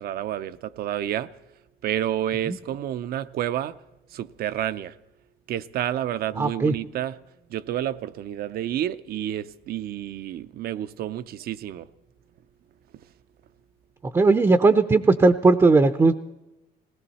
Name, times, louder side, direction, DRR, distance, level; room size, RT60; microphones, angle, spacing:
voice 1, 0.0-1.3 1.8-3.8 4.1-4.9 5.5-7.2 7.5-11.9, right 11 dB, 65° right, 0.7 m, -29 dB
voice 2, 6.4-6.7 14.1-16.1, right 3 dB, 20° right, 0.6 m, -18 dB
19.5 x 17.5 x 4.2 m
cardioid pair, 110°, 17 cm